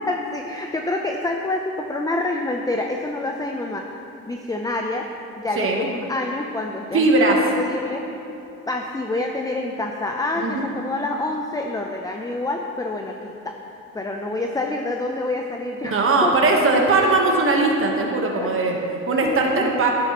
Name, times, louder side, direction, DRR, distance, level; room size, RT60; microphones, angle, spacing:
voice 1, 0.1-4.0 4.3-5.1 5.4-8.1 8.7-13.5 13.9-16.3 16.7-16.8 17.1-17.2 18.4-18.9 19.2-19.7, left 2 dB, 10° left, 2 dB, 0.6 m, -27 dB
voice 2, 5.6-5.9 6.9-7.4 10.4-10.7 15.9-18.8 19.1-19.9, right 3 dB, 40° right, 0 dB, 1.3 m, -19 dB
10.0 x 9.8 x 3.1 m, 2.9 s
supercardioid pair, 75°, 33 cm